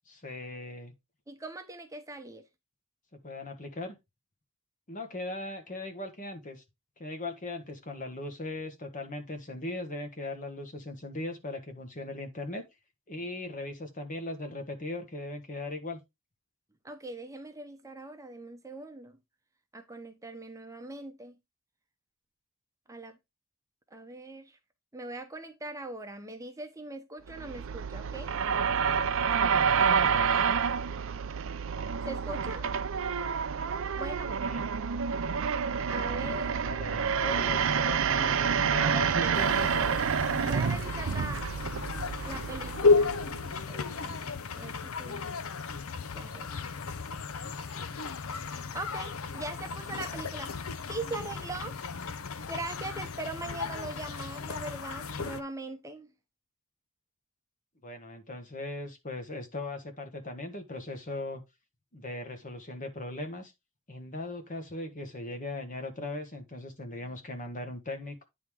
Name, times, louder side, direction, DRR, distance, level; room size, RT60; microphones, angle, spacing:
voice 1, 0.1-0.9 3.1-4.0 4.9-6.6 7.0-12.6 13.1-16.0 29.4-29.7 34.3-34.7 36.6-40.0 57.8-61.4 61.9-63.5 63.9-68.3, left 2 dB, 40° left, 1.5 m, -39 dB
voice 2, 1.3-2.4 16.8-19.2 19.7-21.4 22.9-23.2 23.9-24.6 24.9-28.4 29.4-29.6 32.1-32.6 34.0-34.4 35.9-36.6 38.8-39.5 40.4-41.5 42.2-43.1 43.7-45.3 46.1-46.5 48.7-50.5 50.9-51.8 52.5-56.1, right 2 dB, 15° right, 0.8 m, -41 dB
sound 1, 27.3-43.6, right 6 dB, 65° right, 0.5 m, -28 dB
sound 2, 39.3-55.4, left 4 dB, 70° left, 0.7 m, -33 dB
9.3 x 3.6 x 4.7 m
head